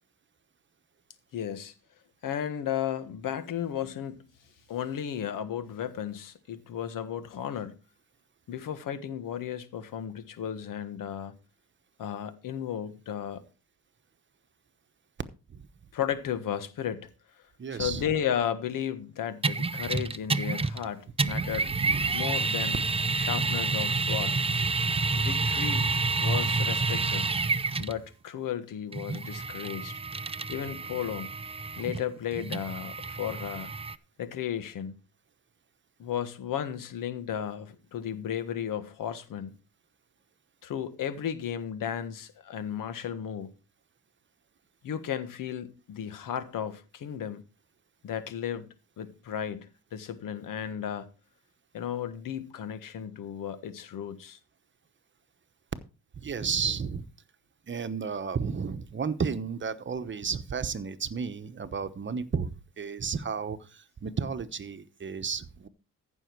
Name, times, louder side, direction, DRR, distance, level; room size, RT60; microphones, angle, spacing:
voice 1, 1.3-1.7 2.2-4.2 4.7-7.8 8.5-11.4 12.0-13.4 15.9-17.1 17.7-21.7 22.1-22.8 23.2-24.4 25.1-25.9 26.2-27.3 27.8-30.0 30.5-31.3 31.8-33.7 34.2-35.0 36.0-39.6 40.6-43.5 44.8-47.4 48.0-51.1 51.7-54.4, left 9 dB, 80° left, 1.5 m, -34 dB
voice 2, 17.6-18.0 21.2-22.2 56.2-57.0 57.7-62.5 62.8-65.7, right 6 dB, 35° right, 1.0 m, -33 dB
sound 1, 19.4-20.9 21.2-28.0 28.9-33.9, right 3 dB, 20° right, 0.6 m, -29 dB
14.5 x 6.3 x 4.6 m
cardioid pair, 95°, 32 cm